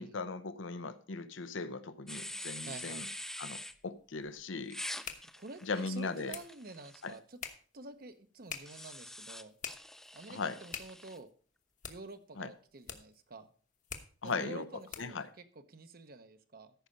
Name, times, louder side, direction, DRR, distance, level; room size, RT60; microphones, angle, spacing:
voice 1, 0.0-3.1 3.4-4.8 5.6-6.3 7.0-7.1 10.3-10.6 12.4-12.5 14.2-14.7 15.0-15.3, left 4 dB, 85° left, 13 dB, 0.8 m, -38 dB
sound 1, 2.1-3.7 4.7-7.1 8.6-11.2, left 1 dB, ahead, 0.3 m, -45 dB
voice 2, 2.7-3.0 5.4-7.4 7.7-9.5 10.1-11.3 11.9-13.5 14.2-16.7, right 3 dB, 50° right, 9 dB, 0.8 m, -48 dB
sound 2, 3.7-15.3, left 7 dB, 40° left, 1.1 m, -49 dB
14.0 x 5.6 x 5.1 m, 0.43 s
head